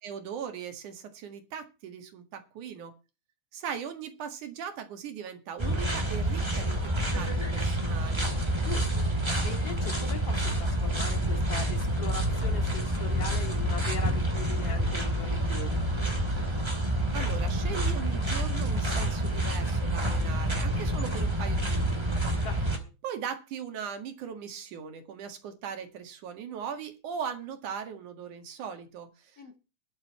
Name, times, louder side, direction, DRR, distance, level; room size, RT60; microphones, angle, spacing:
voice 1, 0.0-2.9 3.5-8.3 17.1-22.2 23.0-29.6, right 7 dB, 75° right, 7 dB, 3.3 m, -39 dB
sound 1, 5.6-22.8, right 1 dB, 10° right, 2.1 m, -28 dB
voice 2, 8.6-9.1 9.4-15.8 22.4-22.7 29.4-29.6, left 5 dB, 50° left, 6 dB, 3.2 m, -40 dB
21.0 x 7.5 x 4.3 m, 0.30 s
omnidirectional pair, 3.6 m